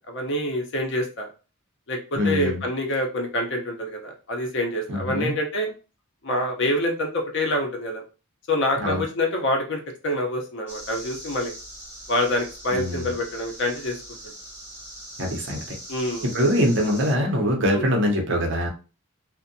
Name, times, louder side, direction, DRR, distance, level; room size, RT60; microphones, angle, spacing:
voice 1, 0.1-1.3 1.9-5.7 6.2-8.0 8.5-11.5 12.1-14.0 14.2-14.3 15.9-16.3 17.7-17.9, left 1 dB, 55° left, 2 dB, 0.7 m, -26 dB
voice 2, 2.2-2.6 4.9-5.3 8.8-9.0 12.7-13.1 15.2-15.6 16.2-18.7, equal, 55° right, 1 dB, 0.7 m, -23 dB
sound 1, 10.7-17.1, right 1 dB, 10° right, 1.0 m, -41 dB
2.6 x 2.1 x 2.6 m, 0.34 s
head